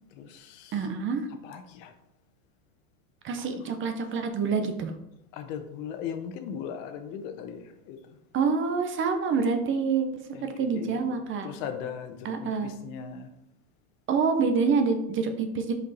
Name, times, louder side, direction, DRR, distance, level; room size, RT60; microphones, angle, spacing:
voice 1, 0.2-0.9 1.4-1.9 3.5-3.7 5.3-8.2 10.3-11.2 11.4-13.3, left 7 dB, 55° left, 7 dB, 1.1 m, -39 dB
voice 2, 0.7-1.3 3.2-4.9 8.3-11.5 12.2-12.7 14.1-15.7, right 5 dB, 30° right, 7 dB, 0.8 m, -27 dB
5.3 x 5.0 x 4.1 m, 0.80 s
supercardioid pair, 130°, 44 cm